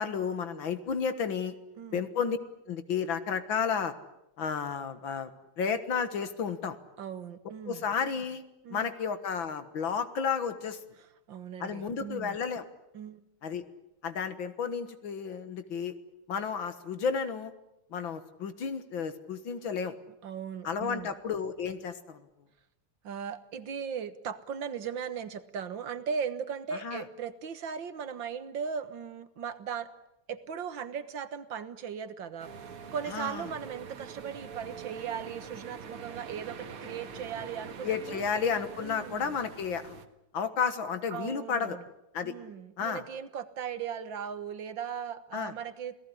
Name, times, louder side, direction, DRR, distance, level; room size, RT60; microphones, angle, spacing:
voice 1, 0.0-1.5 1.9-2.4 2.7-3.9 4.4-5.3 5.6-6.8 7.7-8.4 8.7-10.8 11.6-12.7 13.4-13.7 14.0-16.0 16.3-17.5 17.9-20.0 20.6-22.2 26.8-27.0 33.1-33.4 37.8-40.0 40.3-41.8 42.1-42.3 42.8-43.0 45.3-45.5, left 6 dB, 65° left, 11 dB, 2.2 m, -32 dB
voice 2, 7.0-7.9 8.6-8.9 11.3-12.4 12.9-13.2 20.2-21.1 23.0-29.9 30.3-38.3 38.8-39.3 41.1-41.8 42.2-46.0, right 7 dB, 60° right, 12 dB, 2.0 m, -38 dB
sound 1, 32.4-40.1, right 6 dB, 80° right, 2.5 m, -44 dB
28.0 x 18.0 x 10.0 m, 0.84 s
omnidirectional pair, 2.4 m